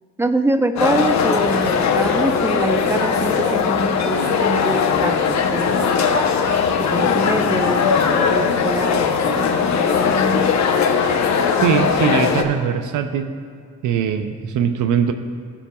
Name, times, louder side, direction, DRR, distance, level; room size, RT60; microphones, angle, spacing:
voice 1, 0.2-6.2 6.8-10.1, right 2 dB, 10° right, 8 dB, 0.6 m, -25 dB
sound 1, 0.8-12.4, left 6 dB, 65° left, 0.9 m, -19 dB
voice 2, 11.3-13.3 13.8-15.1, right 8 dB, 80° right, 7 dB, 0.7 m, -21 dB
16.0 x 7.1 x 2.3 m, 2.1 s
cardioid pair, 90°, 30 cm